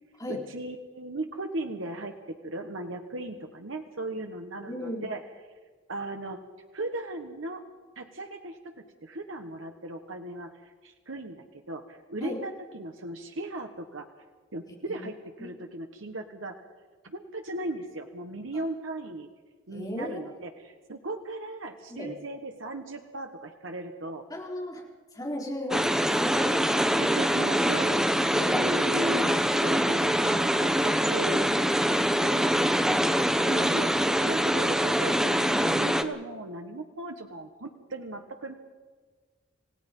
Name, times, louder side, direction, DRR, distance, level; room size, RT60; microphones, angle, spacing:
voice 1, 0.3-5.2 5.9-6.4 6.7-7.6 7.9-14.1 14.5-16.6 17.0-19.3 19.7-24.2 27.0-32.5 33.4-38.5, right 2 dB, 85° right, 4 dB, 1.4 m, -37 dB
voice 2, 4.7-5.1 12.2-12.4 14.9-15.1 15.4-15.6 18.5-18.6 19.7-20.2 21.9-22.1 24.3-24.9 25.1-25.9 26.2-26.5 32.9-33.6, left 1 dB, 20° left, -2 dB, 4.5 m, -36 dB
sound 1, 25.7-36.0, equal, 5° right, 0.9 m, -24 dB
28.0 x 17.0 x 5.5 m, 1.4 s
head